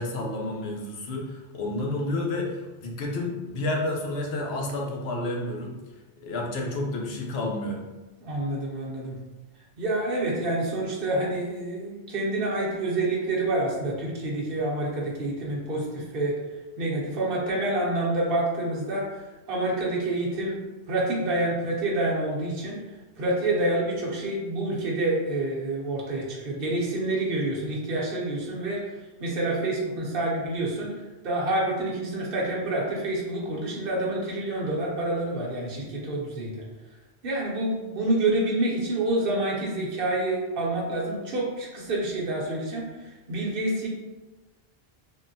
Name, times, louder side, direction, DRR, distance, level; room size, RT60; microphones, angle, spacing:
voice 1, 0.0-5.8 6.2-7.8, left 2 dB, 80° left, 0 dB, 0.8 m, -30 dB
voice 2, 8.2-9.2 9.8-16.3 16.8-19.1 19.5-20.6 20.9-22.8 23.2-28.8 29.2-30.9 31.2-36.5 37.2-43.9, right 2 dB, 65° right, -3 dB, 0.9 m, -27 dB
3.5 x 2.1 x 2.6 m, 1.2 s
omnidirectional pair, 1.1 m